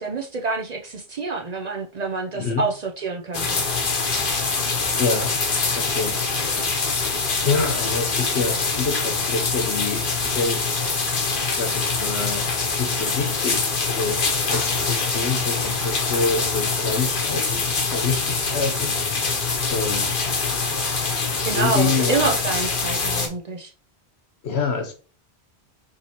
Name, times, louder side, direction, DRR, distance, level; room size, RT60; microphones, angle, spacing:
voice 1, 0.0-3.6 21.4-23.7, right 4 dB, 50° right, 0.5 m, -27 dB
voice 2, 2.3-2.7 5.0-5.3 5.7-14.2 14.5-20.3 21.5-22.4 24.4-24.9, left 4 dB, 85° left, 1.2 m, -27 dB
sound 1, 3.3-23.3, left 4 dB, 55° left, 1.0 m, -24 dB
4.5 x 3.0 x 2.9 m
omnidirectional pair, 1.1 m